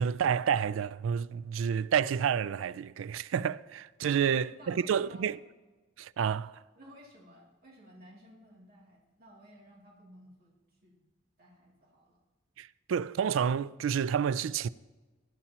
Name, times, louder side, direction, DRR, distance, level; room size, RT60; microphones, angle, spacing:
voice 1, 0.0-5.4 6.0-6.6 12.6-14.7, right 7 dB, 85° right, 0.3 m, -29 dB
voice 2, 4.0-5.3 6.7-10.6 10.8-11.0 11.4-12.2, right 1 dB, 50° right, 2.6 m, -55 dB
19.5 x 11.0 x 2.9 m
head